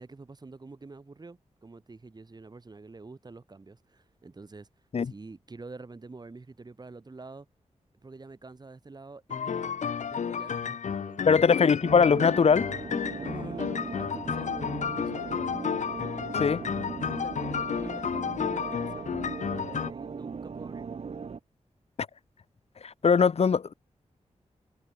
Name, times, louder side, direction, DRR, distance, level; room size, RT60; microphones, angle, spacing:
voice 1, 0.0-4.7 5.0-7.5 8.0-9.7 10.0-11.4 13.1-15.5 17.1-20.9, right 3 dB, 35° right, 4.1 m, -46 dB
sound 1, 9.3-19.9, left 7 dB, 85° left, 1.6 m, -32 dB
voice 2, 11.3-12.7 16.3-16.6 22.8-23.7, left 6 dB, 60° left, 1.0 m, -21 dB
sound 2, 11.8-21.4, right 5 dB, 55° right, 1.3 m, -39 dB
wide cardioid pair, 115°, 12 cm